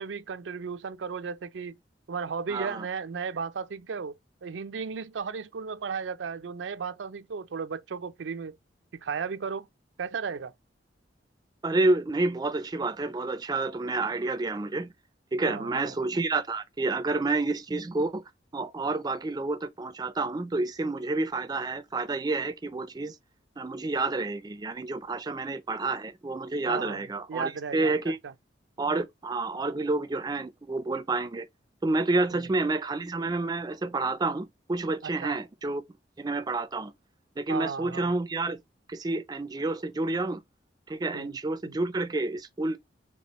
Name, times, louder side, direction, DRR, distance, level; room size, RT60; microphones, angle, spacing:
voice 1, 0.0-1.8 2.1-4.1 4.4-8.6 8.9-9.7 10.0-10.5 15.4-15.9 26.7-27.9 28.2-28.3 32.3-32.4 35.0-35.4 37.5-38.1 41.1-41.4 41.7-41.8, right 5 dB, 90° right, 0.5 m, -35 dB
voice 2, 2.5-2.9 11.6-14.9 15.3-18.2 18.5-23.2 23.6-28.2 28.8-31.5 31.8-35.8 36.2-36.9 37.4-38.6 38.9-40.4 40.9-42.8, right 2 dB, 20° right, 0.4 m, -29 dB
4.4 x 3.3 x 3.0 m
head